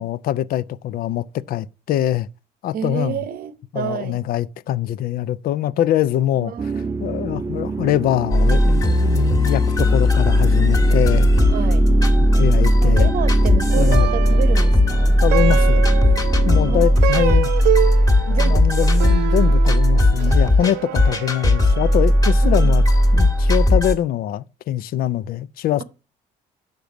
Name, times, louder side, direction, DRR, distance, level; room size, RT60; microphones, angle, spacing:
voice 1, 0.0-2.3 2.6-3.2 3.7-6.5 7.0-11.3 12.4-13.1 13.8-14.1 15.2-15.9 16.4-17.5 18.3-22.8 23.1-25.8, left 12 dB, 60° left, 0.4 m, -23 dB
voice 2, 2.7-4.2 6.4-6.9 11.5-11.9 12.8-15.2 16.7-17.8 18.3-18.7 22.4-22.7, right 9 dB, 60° right, 0.8 m, -30 dB
sound 1, 6.6-16.9, right 4 dB, 20° right, 0.3 m, -28 dB
sound 2, 8.3-24.0, left 1 dB, 20° left, 1.5 m, -16 dB
Plucked string instrument, 13.7-23.1, right 16 dB, 85° right, 0.5 m, -27 dB
6.7 x 5.2 x 5.8 m
cardioid pair, 110°, 17 cm